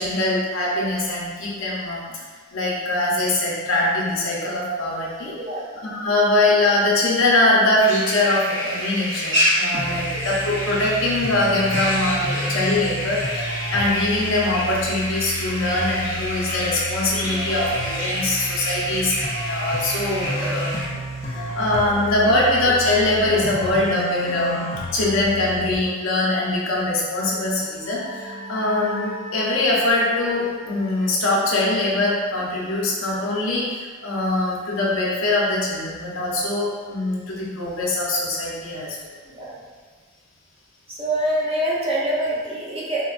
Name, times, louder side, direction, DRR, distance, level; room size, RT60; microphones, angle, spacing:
voice 1, 0.0-2.2 2.5-5.3 5.8-20.9 21.2-24.6 24.9-39.0, left 2 dB, 70° left, -4 dB, 0.7 m, -22 dB
sound 1, 7.8-20.8, equal, 60° right, 1.1 m, -28 dB
sound 2, 9.7-25.7, equal, 30° left, 0.3 m, -32 dB
sound 3, 27.2-32.6, equal, 80° right, 1.2 m, -38 dB
voice 2, 41.0-43.0, right 1 dB, 30° right, -6 dB, 0.6 m, -25 dB
3.5 x 2.2 x 2.4 m, 1.5 s
head